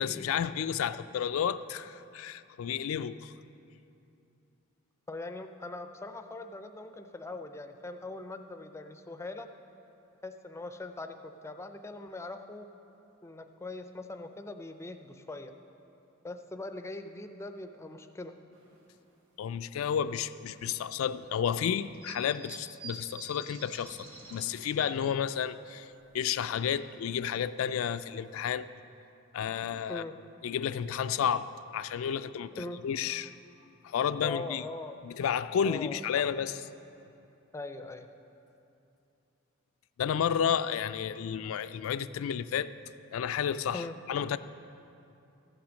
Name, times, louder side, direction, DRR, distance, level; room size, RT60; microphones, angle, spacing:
voice 1, 0.0-3.3 19.4-24.0 24.3-25.9 26.1-28.7 29.3-30.0 30.4-33.3 33.8-34.6 35.0-36.6 40.0-42.7 43.1-43.8 44.1-44.4, left 8 dB, 80° left, 13 dB, 0.3 m, -31 dB
voice 2, 5.1-9.5 10.2-12.7 13.2-15.5 16.2-18.4 29.9-30.2 32.6-32.8 34.2-35.0 35.5-36.6 37.5-38.1 43.7-43.9, left 2 dB, 15° left, 8 dB, 0.4 m, -41 dB
sound 1, 18.5-18.8 19.4-19.5 20.5-20.6 21.9-25.1 25.6-25.7 25.9-26.0 26.5-26.8 27.4-27.5 27.8-28.0 28.4-28.5, right 2 dB, 85° right, 1.6 m, -47 dB
14.0 x 6.0 x 6.3 m, 2.8 s
head